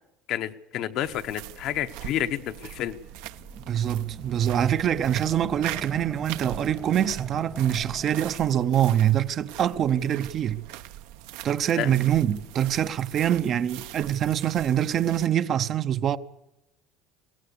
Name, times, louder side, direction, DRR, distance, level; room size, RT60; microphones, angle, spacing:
voice 1, 0.3-3.0 11.7-11.9, left 11 dB, 50° left, 1.0 m, -30 dB
sound 1, 1.0-15.3, right 14 dB, 80° right, 1.0 m, -42 dB
sound 2, 3.1-8.7, right 1 dB, 5° right, 0.7 m, -43 dB
voice 2, 3.7-10.7 11.4-16.2, right 10 dB, 35° right, 0.7 m, -24 dB
22.0 x 17.5 x 6.8 m
cardioid pair, 160°, 0 cm